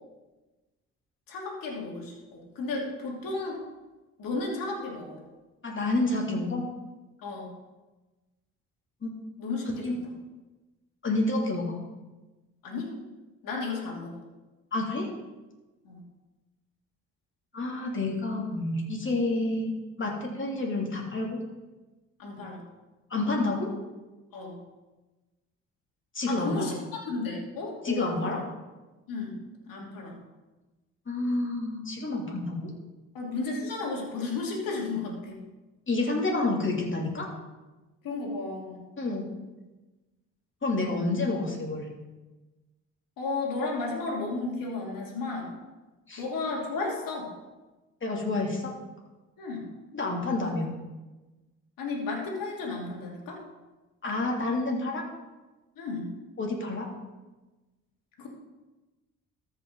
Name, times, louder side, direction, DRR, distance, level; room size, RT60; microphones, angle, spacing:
voice 1, 1.3-3.6 4.2-5.2 7.2-7.5 9.4-9.6 12.6-12.9 13.4-14.2 15.8-16.0 22.2-22.6 24.3-24.6 26.3-28.4 29.1-29.4 29.7-30.2 33.1-35.4 38.0-38.9 43.2-45.5 46.2-47.3 49.4-49.7 51.8-53.4 55.8-56.1 58.2-58.3, left 3 dB, 70° left, -1 dB, 2.7 m, -33 dB
voice 2, 5.6-6.6 9.0-9.1 9.8-9.9 11.0-11.8 14.7-15.1 17.5-19.7 20.0-21.4 23.1-23.7 26.1-26.7 27.8-28.4 31.1-32.7 35.9-37.3 39.0-39.3 40.6-41.9 46.1-46.2 48.0-48.7 49.9-50.7 54.0-55.0 56.4-56.9, left 2 dB, 35° left, -1 dB, 2.9 m, -29 dB
13.5 x 5.8 x 4.0 m, 1.1 s
hypercardioid pair, 60°, 35 cm